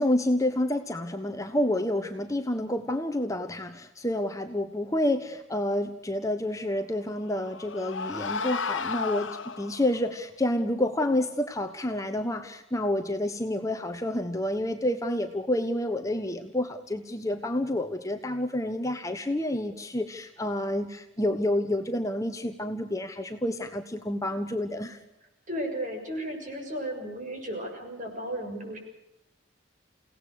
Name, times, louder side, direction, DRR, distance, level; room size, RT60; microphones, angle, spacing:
voice 1, 0.0-25.0, left 1 dB, 15° left, 6 dB, 1.2 m, -29 dB
sound 1, 7.0-10.0, left 5 dB, 80° left, 1.3 m, -33 dB
voice 2, 25.5-28.8, right 1 dB, 40° right, 2 dB, 6.9 m, -34 dB
29.5 x 18.0 x 6.6 m, 0.86 s
head